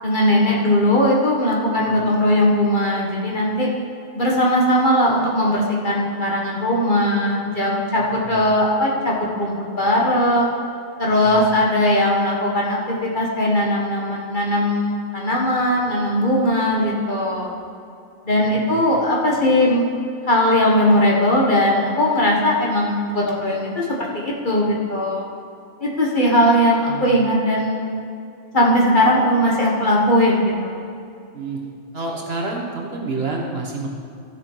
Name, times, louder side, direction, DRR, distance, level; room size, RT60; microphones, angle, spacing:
voice 1, 0.0-3.7 4.1-10.5 11.0-17.5 18.2-19.9 20.3-23.8 24.1-25.2 25.8-28.0 28.5-30.8, left 1 dB, 40° left, -3 dB, 1.6 m, -19 dB
voice 2, 8.0-8.5 11.2-11.5 18.3-18.8 26.8-27.2 31.3-31.6 31.9-33.9, right 3 dB, 50° right, -1 dB, 1.5 m, -29 dB
14.5 x 6.4 x 4.6 m, 2.5 s
omnidirectional pair, 1.4 m